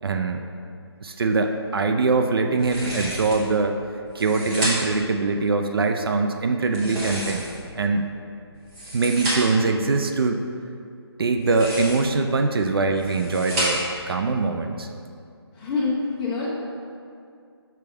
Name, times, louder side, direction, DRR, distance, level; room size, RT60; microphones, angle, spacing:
voice 1, 0.0-0.4 1.0-3.7 4.1-7.4 7.7-8.1 8.9-10.4 11.2-14.9, right 3 dB, 60° right, 5 dB, 0.4 m, -23 dB
sound 1, 2.6-3.5 4.1-5.1 6.6-7.7 8.5-9.7 11.3-12.2 12.8-14.0, equal, 15° right, 0.9 m, -30 dB
voice 2, 15.5-16.5, left 4 dB, 15° left, -6 dB, 0.7 m, -26 dB
6.0 x 3.5 x 4.6 m, 2.4 s
figure-of-eight pair, 160°, 14 cm